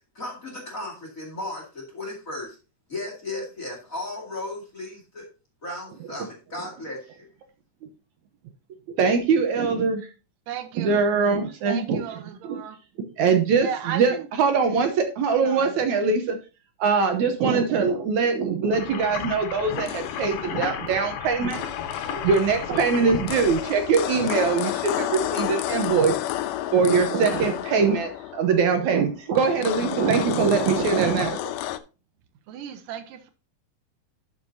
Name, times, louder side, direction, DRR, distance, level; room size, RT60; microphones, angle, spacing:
voice 1, 0.1-2.6 2.9-5.3 5.6-7.3, left 2 dB, 30° left, 2.2 m, -35 dB
voice 2, 9.0-10.1 10.8-12.0 12.4-12.6 13.0-16.4 16.8-21.7 22.1-26.2 26.7-31.4, right 5 dB, 70° right, 2.1 m, -22 dB
voice 3, 10.5-11.0 11.7-12.8 13.6-14.3 15.4-15.7 32.5-33.3, right 9 dB, 85° right, 2.6 m, -35 dB
sound 1, 18.7-23.7, left 8 dB, 70° left, 2.3 m, -33 dB
sound 2, 19.7-31.8, left 13 dB, 85° left, 2.2 m, -31 dB
12.0 x 6.3 x 2.7 m
omnidirectional pair, 3.8 m